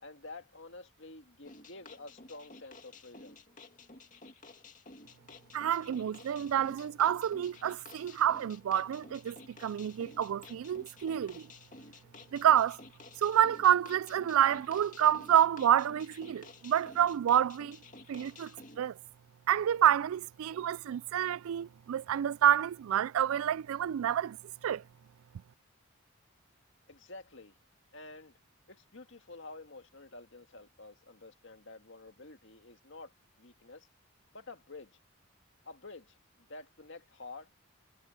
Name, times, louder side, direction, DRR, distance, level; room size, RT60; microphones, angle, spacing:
voice 1, 0.0-3.4 26.9-27.5 27.9-28.3 28.7-33.1 33.4-33.9 34.3-34.9 35.7-36.2 36.5-37.5, left 3 dB, 60° left, 2.0 m, -49 dB
sound 1, 1.4-18.8, left 3 dB, 35° left, 2.3 m, -53 dB
voice 2, 5.5-11.4 12.3-12.8 13.2-17.8 18.1-18.5 18.8-19.0 19.5-24.4 24.6-24.8, right 10 dB, 75° right, 0.3 m, -28 dB
head